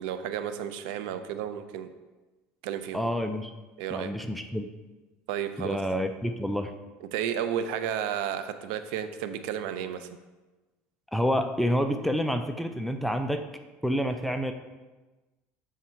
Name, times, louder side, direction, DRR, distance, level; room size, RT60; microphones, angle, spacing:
voice 1, 0.0-2.0 2.6-3.1 3.8-4.1 5.3-5.8 7.1-10.1, right 9 dB, 85° right, 10 dB, 0.5 m, -32 dB
voice 2, 2.9-3.5 3.9-4.7 5.6-6.7 11.1-13.4 13.8-14.5, equal, ahead, 6 dB, 0.3 m, -28 dB
7.2 x 3.6 x 4.4 m, 1.2 s
cardioid pair, 145°, 5 cm